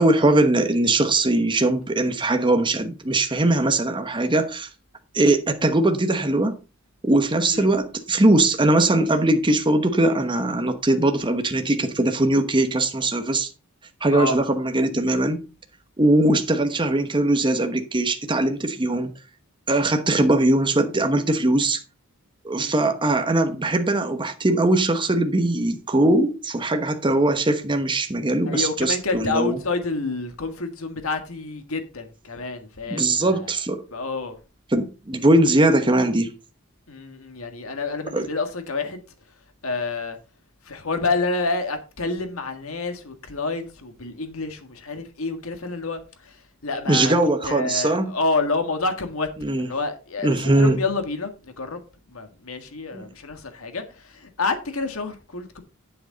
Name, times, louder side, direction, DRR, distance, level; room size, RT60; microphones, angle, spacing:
voice 1, 0.0-4.7 5.1-6.6 7.0-13.5 14.0-15.4 16.0-19.1 19.7-21.8 22.4-29.6 32.9-33.8 34.7-36.3 38.1-38.3 46.9-48.1 49.4-49.7 50.2-50.8 52.9-53.0, right 2 dB, 20° right, 1.1 m, -20 dB
voice 2, 22.6-22.9 28.5-33.5 33.9-34.4 36.9-39.0 39.6-40.2 40.7-47.2 47.4-49.3 49.6-51.8 52.1-55.6, left 3 dB, 70° left, 1.8 m, -28 dB
9.1 x 7.8 x 4.0 m
head